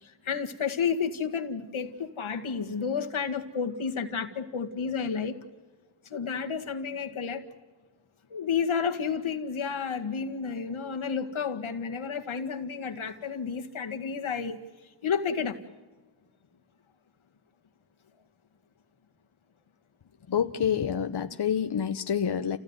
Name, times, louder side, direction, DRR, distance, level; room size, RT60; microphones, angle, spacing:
voice 1, 0.0-5.4 6.0-7.5 8.3-14.6 15.0-15.6, left 6 dB, 80° left, 5 dB, 2.0 m, -31 dB
voice 2, 20.3-22.6, left 8 dB, 55° left, 7 dB, 1.0 m, -27 dB
29.5 x 16.5 x 9.6 m, 1.2 s
wide cardioid pair, 85°, 48 cm